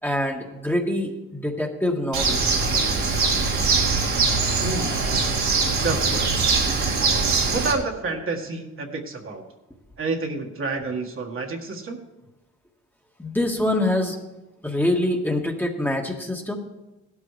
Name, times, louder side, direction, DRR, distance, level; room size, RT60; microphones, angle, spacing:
voice 1, 0.0-2.4 13.2-14.2 14.6-16.6, left 1 dB, 5° left, 1 dB, 1.5 m, -25 dB
Bird, 2.1-7.7, right 4 dB, 70° right, 2.5 m, -22 dB
voice 2, 4.6-5.0 5.8-6.5 7.5-9.4 10.0-12.0, right 3 dB, 45° right, 1 dB, 1.7 m, -29 dB
16.5 x 12.0 x 3.3 m, 1.1 s
cardioid pair, 90°, 30 cm